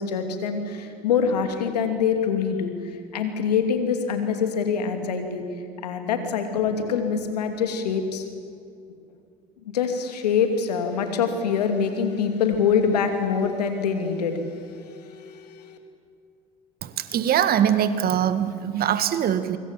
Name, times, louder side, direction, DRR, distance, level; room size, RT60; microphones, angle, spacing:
voice 1, 0.0-5.4 5.8-8.3 9.7-15.8, left 6 dB, 85° left, 6 dB, 2.7 m, -25 dB
voice 2, 16.8-19.6, right 9 dB, 50° right, 12 dB, 1.8 m, -22 dB
25.0 x 24.5 x 7.5 m, 2.4 s
hypercardioid pair, 70°, 20 cm